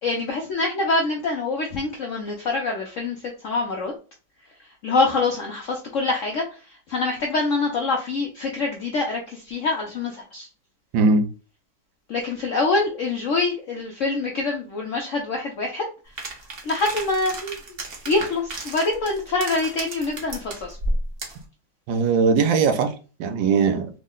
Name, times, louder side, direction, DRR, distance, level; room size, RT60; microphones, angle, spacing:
voice 1, 0.0-3.9 4.8-10.5 12.1-15.9 16.6-17.6 18.1-20.8, left 3 dB, 70° left, 0.7 m, -25 dB
sound 1, 16.2-21.4, right 1 dB, 50° right, 0.7 m, -32 dB
voice 2, 21.9-22.9 23.2-23.9, right 4 dB, 80° right, 1.4 m, -19 dB
3.6 x 2.1 x 3.7 m
omnidirectional pair, 2.0 m